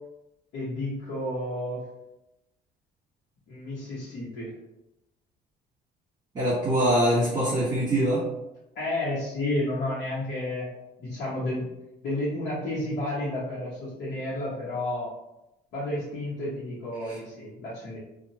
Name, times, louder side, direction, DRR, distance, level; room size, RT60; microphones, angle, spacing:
voice 1, 0.5-1.8 3.5-4.5 8.7-10.7 11.0-11.6 12.0-15.1 15.7-18.0, left 1 dB, 75° left, -9 dB, 1.0 m, -31 dB
voice 2, 6.3-8.2 17.0-17.2, right 1 dB, 25° right, -10 dB, 1.3 m, -24 dB
2.7 x 2.3 x 2.9 m, 0.94 s
cardioid pair, 110°, 17 cm